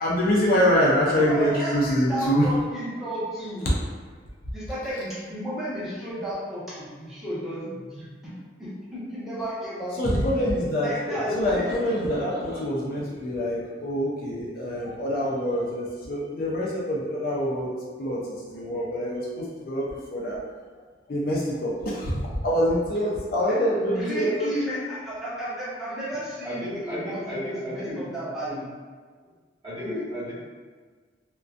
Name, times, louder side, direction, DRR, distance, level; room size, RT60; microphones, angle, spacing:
voice 1, 0.0-2.5 9.9-10.9 11.3-17.7 18.0-19.8 20.1-20.4 21.1-22.1 22.4-24.5, equal, 50° left, -5 dB, 0.4 m, -25 dB
voice 2, 1.1-3.8 4.5-8.3 8.6-10.1 10.8-11.8 23.4-23.6 23.8-28.6, equal, ahead, -12 dB, 0.8 m, -33 dB
voice 3, 11.1-12.6 26.4-28.0 28.5-28.6 29.6-30.3, left 1 dB, 25° right, -12 dB, 1.1 m, -33 dB
2.4 x 2.1 x 2.4 m, 1.5 s
head